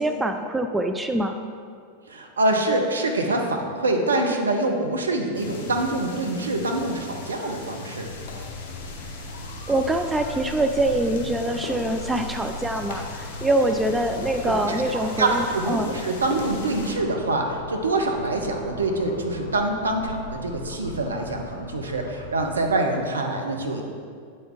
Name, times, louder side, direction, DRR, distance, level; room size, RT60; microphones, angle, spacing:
voice 1, 0.0-1.4 9.7-15.9, right 1 dB, 10° right, 6 dB, 0.3 m, -24 dB
voice 2, 2.1-8.1 14.4-23.8, right 2 dB, 70° right, 3 dB, 0.7 m, -25 dB
sound 1, 5.3-17.0, left 3 dB, 50° left, 1.4 m, -38 dB
sound 2, 8.0-22.8, left 2 dB, 65° left, 0.7 m, -40 dB
8.0 x 4.2 x 3.6 m, 2.2 s
figure-of-eight pair, 90°, 0 cm